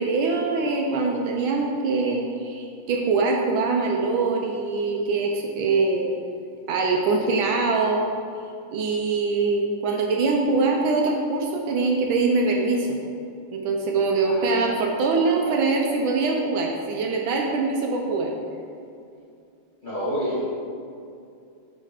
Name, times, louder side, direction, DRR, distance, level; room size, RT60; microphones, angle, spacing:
voice 1, 0.0-6.1 6.7-8.1 8.7-12.9 13.5-18.3, right 3 dB, 75° right, 1 dB, 1.3 m, -23 dB
voice 2, 14.2-14.8 19.8-20.5, equal, 25° left, -10 dB, 1.2 m, -29 dB
6.4 x 3.2 x 4.9 m, 2.5 s
omnidirectional pair, 2.4 m